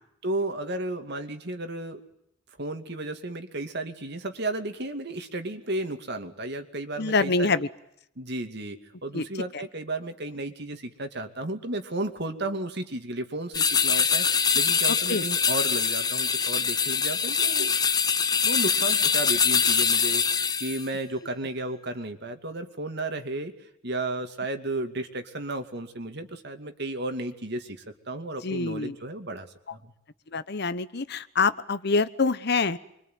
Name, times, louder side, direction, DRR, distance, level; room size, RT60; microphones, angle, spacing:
voice 1, 0.2-2.0 2.6-7.6 8.2-17.7 18.4-29.9, right 2 dB, 55° right, 7 dB, 2.4 m, -33 dB
voice 2, 7.0-7.7 9.1-9.2 15.1-15.2 28.4-28.9 30.3-32.8, left 4 dB, 55° left, 14 dB, 1.1 m, -25 dB
sound 1, 13.5-20.9, left 6 dB, 20° left, 1.0 m, -24 dB
26.5 x 24.0 x 9.4 m, 0.76 s
head